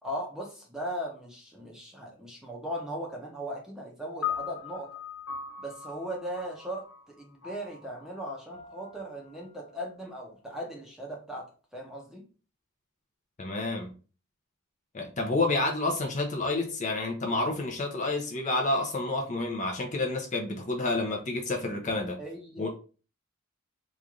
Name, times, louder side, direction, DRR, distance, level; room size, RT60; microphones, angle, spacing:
voice 1, 0.0-4.9 5.6-12.3 22.2-22.7, equal, 5° right, -1 dB, 0.8 m, -38 dB
sound 1, 4.2-10.7, left 8 dB, 75° left, 1.1 m, -40 dB
voice 2, 13.4-13.9 14.9-22.2 22.6-22.7, left 2 dB, 35° left, 1 dB, 0.6 m, -29 dB
3.1 x 2.5 x 3.6 m, 0.36 s
head